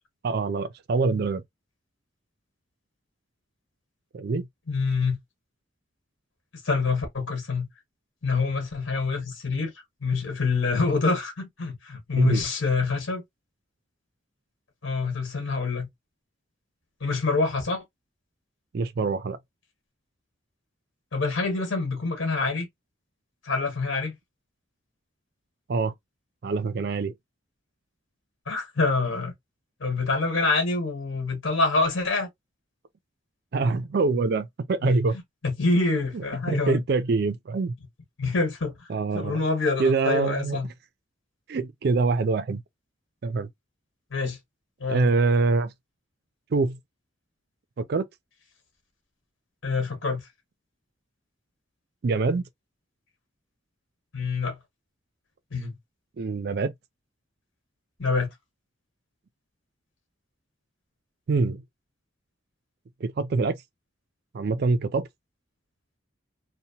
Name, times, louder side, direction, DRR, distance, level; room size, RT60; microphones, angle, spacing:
voice 1, 0.2-1.4 4.1-4.5 12.2-12.4 18.7-19.4 25.7-25.9 26.4-27.1 33.5-35.1 36.1-37.7 38.9-39.4 39.8-40.6 41.5-42.6 43.2-43.5 44.9-45.7 46.5-46.8 47.8-48.1 52.0-52.4 56.2-56.7 61.3-61.6 63.0-63.6 64.3-65.1, right 3 dB, 50° right, 0.4 m, -25 dB
voice 2, 4.7-5.2 6.6-7.7 8.2-9.7 10.0-13.2 14.8-15.9 17.0-17.8 21.1-22.7 23.4-24.1 28.5-29.3 29.8-32.3 34.8-34.9 35.4-36.8 38.2-38.9 39.1-40.7 44.1-44.4 44.8-45.1 49.6-50.2 54.1-54.6 55.5-55.7 58.0-58.3, left 3 dB, 65° left, 1.2 m, -26 dB
2.8 x 2.1 x 2.7 m
head